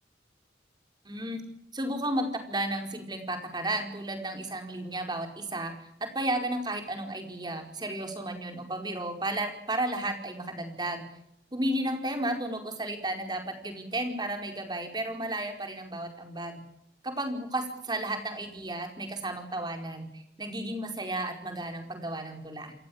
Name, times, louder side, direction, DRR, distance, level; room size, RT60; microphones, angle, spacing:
voice 1, 1.0-1.4 1.7-5.7 6.0-11.0 11.5-16.6 17.0-22.7, right 1 dB, 25° right, 5 dB, 4.8 m, -33 dB
28.5 x 15.0 x 8.8 m, 0.73 s
head